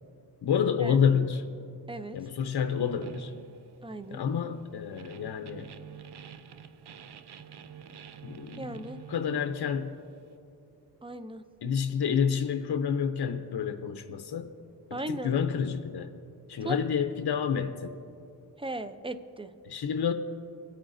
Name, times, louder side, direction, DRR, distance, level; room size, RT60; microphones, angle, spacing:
voice 1, 0.4-1.4 2.1-3.3 4.1-5.7 8.2-10.0 11.6-14.5 14.9-16.1 16.5-18.0 19.6-20.1, left 7 dB, 70° left, 7 dB, 0.6 m, -29 dB
voice 2, 1.9-2.2 3.8-4.2 8.6-9.0 11.0-11.4 14.9-15.3 16.6-16.8 18.6-19.5, right 1 dB, 15° right, 11 dB, 0.5 m, -37 dB
sound 1, 2.7-10.4, right 8 dB, 75° right, 0.6 m, -48 dB
23.0 x 8.8 x 2.6 m, 2.6 s
wide cardioid pair, 70°, 40 cm